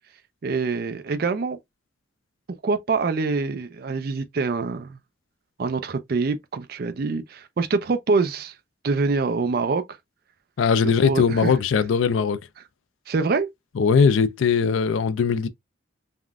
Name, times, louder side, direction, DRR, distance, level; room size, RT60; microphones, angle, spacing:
voice 1, 0.4-1.6 2.6-5.0 5.6-8.5 8.8-9.8 10.8-11.6 13.1-13.5, right 4 dB, 50° right, 0.4 m, -25 dB
voice 2, 10.6-12.4 13.8-15.5, left 5 dB, 85° left, 0.4 m, -20 dB
3.5 x 2.4 x 2.2 m
head